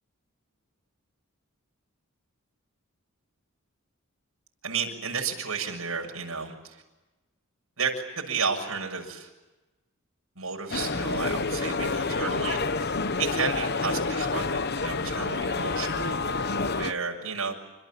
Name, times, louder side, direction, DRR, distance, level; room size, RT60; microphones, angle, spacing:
voice 1, 4.6-6.8 7.8-9.3 10.4-16.2 16.4-17.5, right 5 dB, 75° right, 1 dB, 7.1 m, -32 dB
sound 1, 10.7-16.9, left 3 dB, 50° left, 1.0 m, -28 dB
28.5 x 27.0 x 7.5 m, 1.1 s
head